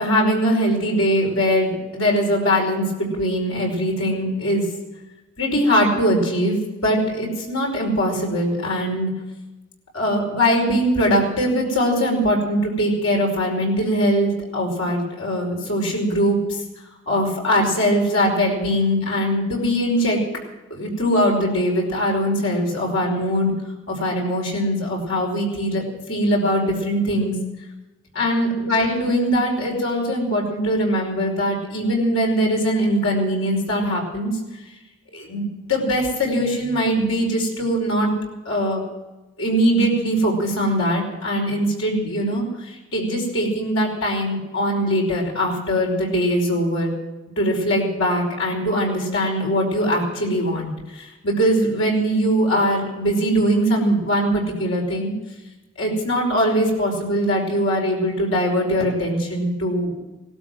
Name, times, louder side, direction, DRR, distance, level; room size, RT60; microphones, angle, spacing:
voice 1, 0.0-4.6 5.4-6.6 6.8-9.1 9.9-16.4 17.1-20.2 20.7-23.5 23.9-27.3 28.2-34.3 35.1-38.1 38.5-38.8 39.4-46.9 47.4-55.1 55.8-59.9, equal, 85° left, -1 dB, 5.3 m, -21 dB
18.0 x 12.5 x 6.2 m, 1.1 s
head